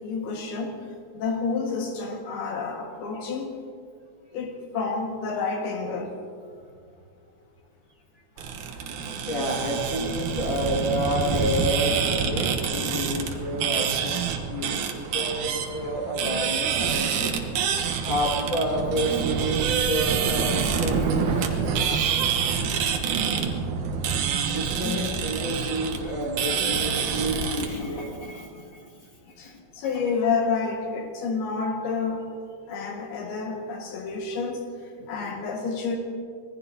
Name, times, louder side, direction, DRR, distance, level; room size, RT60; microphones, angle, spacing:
voice 1, 0.0-0.8 1.1-3.6 4.3-6.1 24.8-25.0 29.4-32.3 32.7-34.7 35.1-36.0, left 4 dB, 90° left, 1 dB, 3.7 m, -29 dB
sound 1, 8.4-27.7, right 6 dB, 65° right, 2.3 m, -27 dB
voice 2, 8.9-17.6 18.1-22.1 24.5-30.4 32.7-32.8 35.0-35.3, right 1 dB, 40° left, -2 dB, 2.2 m, -30 dB
26.0 x 20.0 x 2.8 m, 2.2 s
omnidirectional pair, 4.3 m